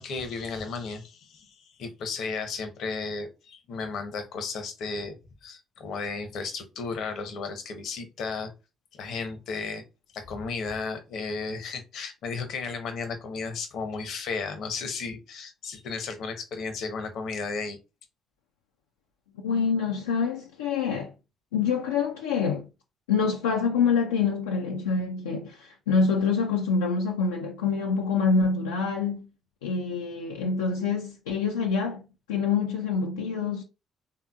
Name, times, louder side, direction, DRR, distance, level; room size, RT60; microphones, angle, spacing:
voice 1, 0.0-8.5 8.9-9.8 10.1-17.8, left 4 dB, 60° left, 0.7 m, -34 dB
voice 2, 19.4-21.1 21.5-22.7 23.1-29.3 29.6-33.6, left 5 dB, 80° left, 0.3 m, -26 dB
3.5 x 2.8 x 2.3 m
hypercardioid pair, 45°, 0 cm